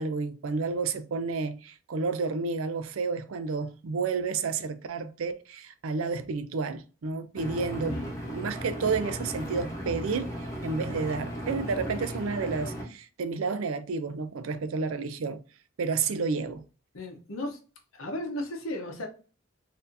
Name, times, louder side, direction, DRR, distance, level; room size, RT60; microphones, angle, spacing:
voice 1, 0.0-15.4 15.8-16.6, right 4 dB, 85° right, 0.4 m, -31 dB
Engine, 7.3-12.8, equal, 15° left, 0.9 m, -36 dB
voice 2, 16.9-17.6 17.9-19.1, left 1 dB, 85° left, 0.9 m, -35 dB
4.2 x 2.7 x 2.6 m
head